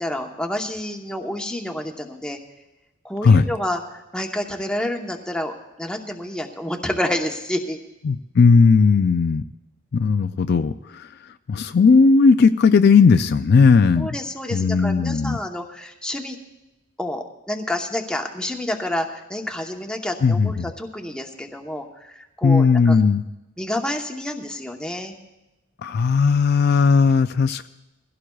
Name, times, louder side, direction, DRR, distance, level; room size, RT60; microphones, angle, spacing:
voice 1, 0.0-2.4 3.0-7.8 14.0-16.4 17.0-23.0 23.6-25.1, left 1 dB, 5° left, 2 dB, 0.9 m, -29 dB
voice 2, 8.0-9.4 9.9-11.1 11.5-14.1 14.5-15.4 20.2-20.7 22.4-23.2 25.8-27.7, left 5 dB, 55° left, 10 dB, 0.4 m, -16 dB
22.0 x 16.0 x 2.3 m, 0.98 s
head